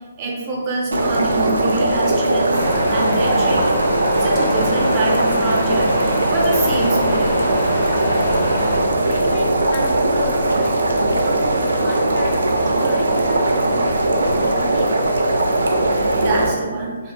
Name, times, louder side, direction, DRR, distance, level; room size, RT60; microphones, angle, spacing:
voice 1, 0.2-2.5 2.9-3.8 4.2-7.5 15.6-17.1, right 2 dB, 30° right, -3 dB, 0.6 m, -25 dB
sound 1, 0.9-16.5, right 2 dB, 80° right, 0.4 m, -19 dB
Wind, 2.5-8.8, left 1 dB, 80° left, 1.2 m, -25 dB
voice 2, 9.0-10.7 11.1-14.9, left 1 dB, 30° left, -1 dB, 0.3 m, -33 dB
2.4 x 2.3 x 2.7 m, 1.4 s
hypercardioid pair, 145°, 0 cm